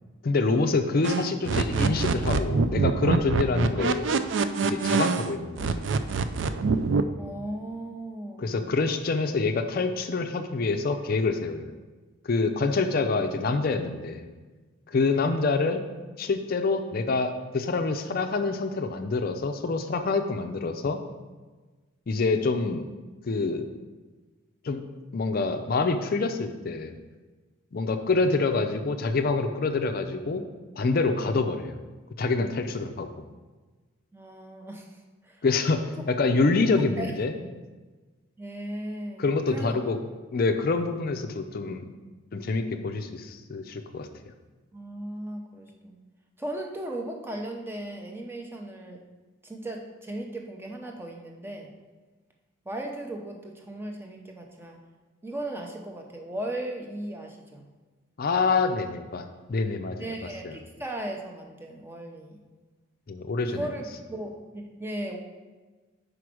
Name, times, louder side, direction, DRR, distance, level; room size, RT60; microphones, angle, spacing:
voice 1, 0.2-4.1 4.6-5.9 8.4-11.7 12.2-14.3 14.9-15.8 16.2-21.0 22.1-22.9 23.2-23.7 24.6-24.8 25.1-27.0 27.7-30.4 30.7-31.8 32.2-33.2 35.4-35.8 36.1-37.3 39.2-40.0 40.3-41.9 42.3-44.1 58.2-60.1 60.4-60.5 63.1-63.7, left 3 dB, 45° left, 6 dB, 0.4 m, -26 dB
sound 1, 1.0-5.3 5.6-7.0, right 4 dB, 60° right, 0.4 m, -25 dB
voice 2, 7.2-8.7 34.1-35.4 37.0-37.1 38.4-39.7 44.7-46.0 46.4-49.0 49.4-51.7 52.6-54.8 55.2-57.7 60.0-62.4 63.4-65.2, right 1 dB, 10° right, 2 dB, 0.7 m, -37 dB
5.1 x 4.8 x 6.1 m, 1.3 s
head